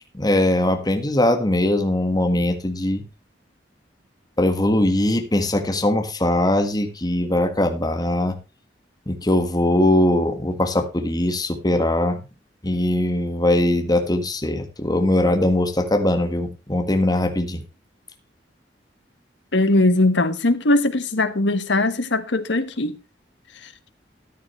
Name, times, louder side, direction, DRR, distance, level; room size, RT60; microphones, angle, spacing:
voice 1, 0.1-3.0 4.4-8.4 9.1-12.2 12.6-17.6, left 1 dB, 20° left, 1.6 m, -21 dB
voice 2, 19.5-22.9, left 2 dB, 80° left, 1.4 m, -20 dB
13.5 x 10.0 x 3.2 m
head